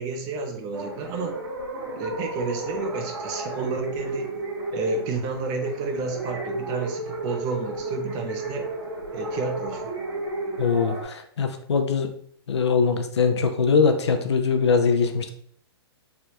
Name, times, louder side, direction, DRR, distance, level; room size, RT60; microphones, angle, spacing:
voice 1, 0.0-1.4 2.0-4.4 4.7-8.7 9.1-9.9, right 3 dB, 30° right, 5 dB, 0.5 m, -30 dB
sound 1, 0.7-11.0, right 2 dB, 60° right, 1.1 m, -33 dB
voice 2, 10.6-12.1 12.5-15.3, left 5 dB, 80° left, 7 dB, 0.5 m, -22 dB
3.4 x 2.2 x 2.8 m, 0.62 s
hypercardioid pair, 135°, 14 cm